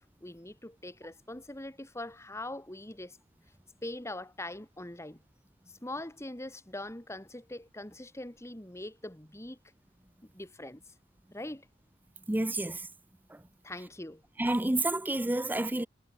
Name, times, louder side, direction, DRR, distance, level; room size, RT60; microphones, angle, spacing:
voice 1, 0.0-3.2 3.8-5.2 5.7-9.6 10.3-10.8 11.3-11.7 13.6-14.2, left 1 dB, 15° left, 2.1 m, -42 dB
voice 2, 12.3-12.9 13.3-13.4 14.4-15.9, right 1 dB, 10° right, 0.6 m, -29 dB
head